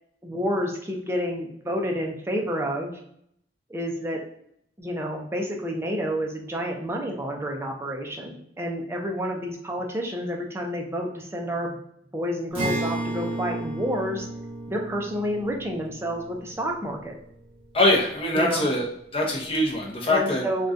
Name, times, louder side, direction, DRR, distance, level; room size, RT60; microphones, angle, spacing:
voice 1, 0.2-2.9 3.7-4.2 4.8-11.8 12.1-14.3 14.7-17.2 18.3-18.7 20.1-20.7, equal, 15° right, 1 dB, 0.4 m, -29 dB
Acoustic guitar, 12.5-18.0, right 2 dB, 30° right, 1.2 m, -34 dB
voice 2, 17.7-18.9 19.1-20.4, left 1 dB, 30° left, -2 dB, 0.7 m, -23 dB
3.6 x 2.2 x 2.5 m, 0.71 s
head